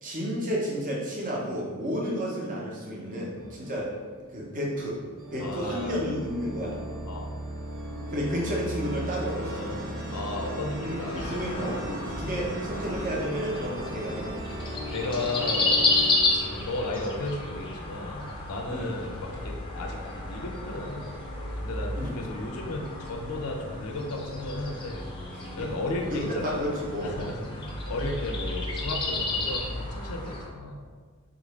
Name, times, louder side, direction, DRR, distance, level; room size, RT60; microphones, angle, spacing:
voice 1, 0.0-3.9 4.3-5.0 5.3-6.8 8.1-9.7 10.8-14.4 18.7-18.9 21.9-22.2 25.3-27.3, equal, 35° right, -3 dB, 0.7 m, -32 dB
sound 1, 3.3-4.6 5.2-17.8, equal, 90° right, 0.7 m, -37 dB
voice 2, 5.4-5.9 7.1-7.3 9.3-9.9 10.1-11.4 14.9-15.9 16.3-21.2 21.6-25.0 25.5-26.7 27.0-30.8, left 2 dB, 80° left, 1 dB, 0.5 m, -34 dB
sound 2, 11.1-30.5, left 2 dB, 25° left, 0.4 m, -32 dB
3.7 x 2.5 x 3.1 m, 1.5 s
head